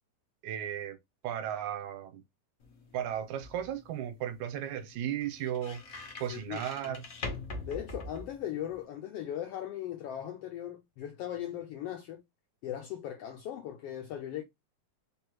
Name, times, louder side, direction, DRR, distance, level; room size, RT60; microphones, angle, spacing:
voice 1, 0.4-1.0 1.2-2.2 2.9-5.8 6.2-7.0, right 10 dB, 85° right, 2.1 m, -35 dB
sound 1, 2.6-8.8, left 3 dB, 60° left, 0.9 m, -44 dB
voice 2, 6.3-7.0 7.6-12.2 12.6-14.4, left 11 dB, 85° left, 1.3 m, -38 dB
4.2 x 3.4 x 3.0 m
omnidirectional pair, 3.4 m